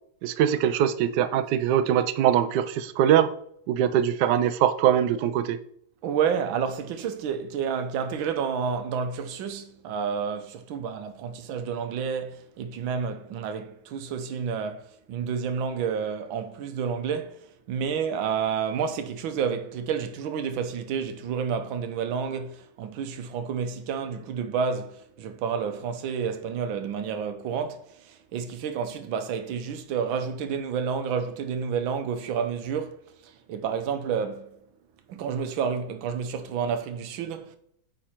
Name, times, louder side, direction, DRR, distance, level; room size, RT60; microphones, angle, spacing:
voice 1, 0.2-3.3 3.7-5.6, right 10 dB, 75° right, 1.1 m, -22 dB
voice 2, 6.0-34.6 35.1-37.6, right 6 dB, 90° right, 1.6 m, -30 dB
9.0 x 3.7 x 4.4 m
omnidirectional pair, 2.1 m